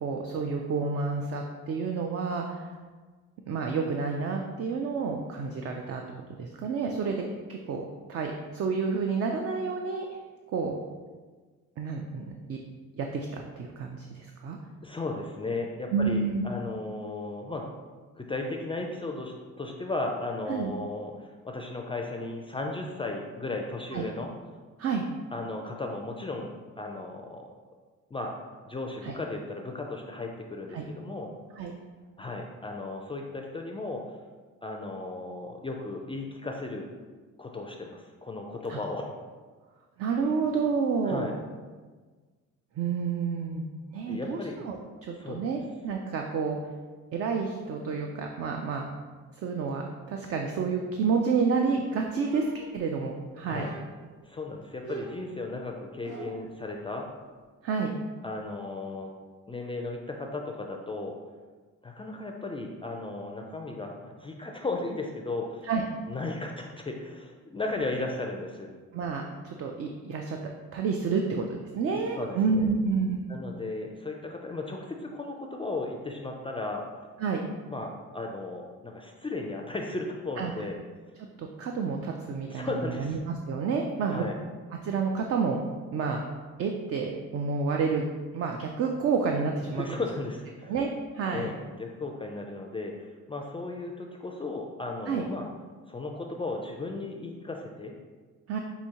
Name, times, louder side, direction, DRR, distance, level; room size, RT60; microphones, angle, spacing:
voice 1, 0.0-2.7 3.5-6.0 6.4-7.2 7.5-7.8 8.1-10.1 10.5-10.7 11.8-12.6 13.0-14.6 15.9-16.4 20.5-20.7 23.9-24.0 24.8-25.0 29.0-29.1 30.7-30.8 31.6-31.7 38.7-38.8 40.0-41.4 42.8-43.6 43.9-44.8 45.0-46.6 47.1-48.9 49.4-53.7 57.6-57.9 65.6-65.8 68.9-70.4 70.7-73.3 77.2-77.4 80.4-80.5 81.4-83.2 83.5-84.2 84.7-85.6 85.9-86.2 86.6-88.0 88.3-89.9 90.7-90.9 91.1-91.5 95.1-95.2 98.5-98.6, right 5 dB, 50° right, 2 dB, 0.4 m, -29 dB
voice 2, 14.8-17.7 18.1-24.3 25.3-27.5 28.1-28.3 28.6-31.3 32.2-34.2 34.6-36.9 37.4-39.1 41.0-41.3 44.1-44.6 45.2-45.5 53.4-53.7 54.2-57.1 58.2-59.1 59.5-61.2 61.8-65.6 66.1-68.7 71.8-72.7 73.3-76.8 77.7-80.8 82.4-83.2 84.1-84.4 89.7-90.7 91.3-95.5 95.9-97.9, left 2 dB, 20° left, 1 dB, 0.4 m, -35 dB
sound 1, 52.2-53.1 53.5-54.1 54.8-56.6, right 5 dB, 80° right, 0.8 m, -44 dB
5.9 x 2.7 x 2.8 m, 1.4 s
cardioid pair, 90°, 30 cm